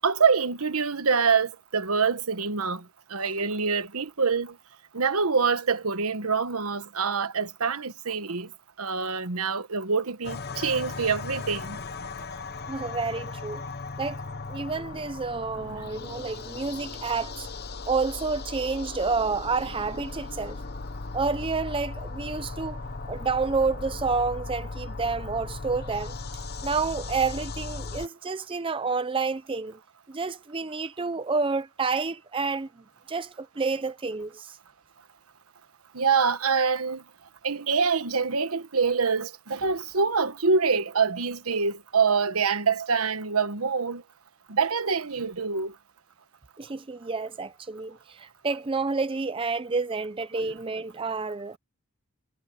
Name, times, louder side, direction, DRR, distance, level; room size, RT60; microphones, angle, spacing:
voice 1, 0.0-2.8 3.1-4.6 4.9-8.5 8.8-11.8 15.7-15.8 35.9-37.0 37.4-44.0 44.5-45.7, right 5 dB, 80° right, 1.3 m, -25 dB
sound 1, 10.2-28.1, left 3 dB, 45° left, 0.9 m, -37 dB
voice 2, 12.7-13.6 14.0-14.2 14.5-17.5 17.9-20.6 21.1-22.8 23.1-26.2 26.6-29.8 30.1-32.7 33.1-34.6 46.6-51.6, right 4 dB, 25° right, 0.5 m, -29 dB
head